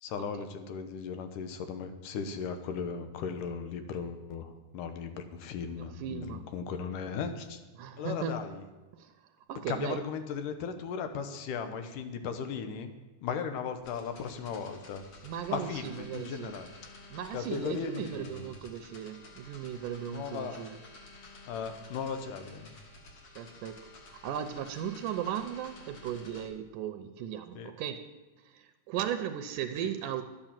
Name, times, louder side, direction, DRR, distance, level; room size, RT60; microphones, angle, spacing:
voice 1, 0.0-7.6 8.0-8.6 9.7-12.9 13.2-15.0 15.5-16.7 17.3-18.5 20.1-20.6 21.5-22.7 27.5-27.7, left 6 dB, 75° left, 8 dB, 2.5 m, -37 dB
voice 2, 5.8-6.5 7.8-8.4 8.9-9.1 9.5-10.0 15.2-16.6 17.1-20.8 23.4-28.1 28.4-30.2, right 9 dB, 75° right, 8 dB, 2.1 m, -37 dB
sound 1, 13.8-26.5, left 2 dB, 45° left, 2.9 m, -52 dB
12.0 x 9.0 x 7.4 m, 1.2 s
omnidirectional pair, 3.9 m